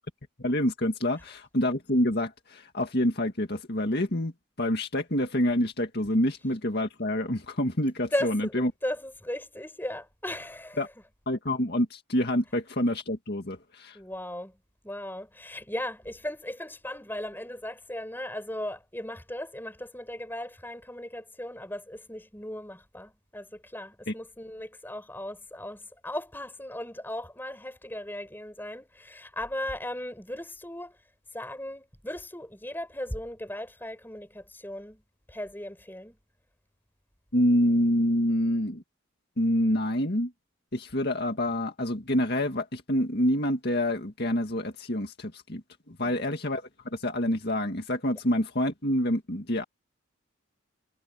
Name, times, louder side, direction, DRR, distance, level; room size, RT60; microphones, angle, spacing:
voice 1, 0.4-4.3 4.6-8.7 10.8-10.9 11.3-14.0 24.1-24.2 37.3-38.8 39.4-40.3 40.7-49.6, left 1 dB, 50° left, 2.2 m, -27 dB
voice 2, 8.1-10.8 13.9-14.5 14.8-31.0 31.3-35.0 35.3-36.2 46.0-46.2, left 1 dB, 10° left, 5.5 m, -37 dB
head